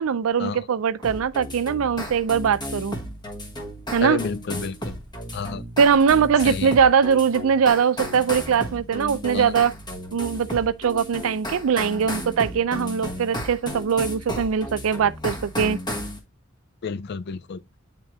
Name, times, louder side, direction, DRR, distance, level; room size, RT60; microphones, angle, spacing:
voice 1, 0.0-3.0 3.9-4.2 5.8-9.7 10.1-15.8, right 6 dB, 80° right, 0.4 m, -21 dB
sound 1, 1.0-16.2, equal, 20° left, 1.2 m, -34 dB
voice 2, 4.0-5.0 5.3-5.6 6.4-6.7 9.3-9.5 16.8-17.6, left 5 dB, 50° left, 0.4 m, -30 dB
9.0 x 3.7 x 3.0 m
head